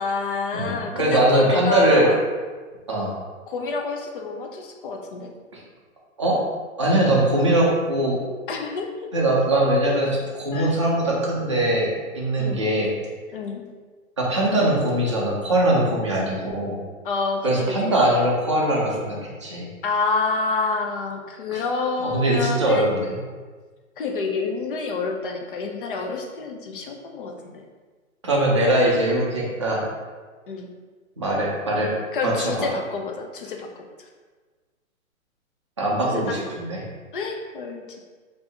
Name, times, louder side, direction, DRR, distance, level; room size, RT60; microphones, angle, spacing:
voice 1, 0.0-2.2 3.5-5.3 8.5-8.9 10.5-10.7 12.4-12.7 13.3-13.6 17.0-18.1 19.8-22.9 24.0-27.6 30.5-30.7 32.1-33.7 36.1-36.4 37.1-38.0, left 4 dB, 40° left, 2 dB, 0.5 m, -28 dB
voice 2, 0.5-2.1 2.9-3.2 5.5-5.6 6.2-6.5 6.8-8.2 9.1-11.9 12.1-12.9 14.2-16.8 17.4-19.7 21.5-21.6 22.0-23.2 28.2-29.9 31.2-32.7 35.8-36.8, right 1 dB, 25° right, -4 dB, 0.4 m, -21 dB
3.3 x 2.7 x 4.2 m, 1.4 s
hypercardioid pair, 160°, 41 cm